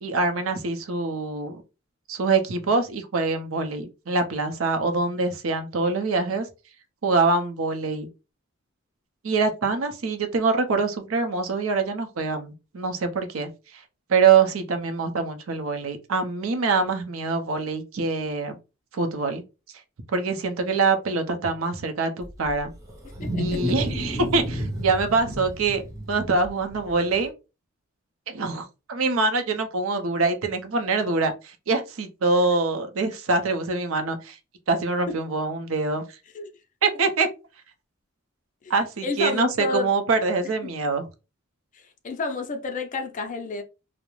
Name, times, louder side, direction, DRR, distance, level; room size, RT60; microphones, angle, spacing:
voice 1, 0.0-1.6 2.1-6.5 7.0-8.1 9.2-13.8 14.1-18.6 18.9-19.4 20.1-22.7 23.4-27.3 28.3-34.4 34.7-36.2 36.8-37.3 38.7-41.0, right 4 dB, 70° right, 0.5 m, -24 dB
Wild animals, 22.2-27.2, equal, 15° right, 0.5 m, -31 dB
voice 2, 23.0-23.7 35.1-35.2 36.3-36.5 38.6-38.7 39.0-39.9 41.7-43.6, left 4 dB, 35° left, 0.4 m, -30 dB
2.3 x 2.0 x 3.0 m
head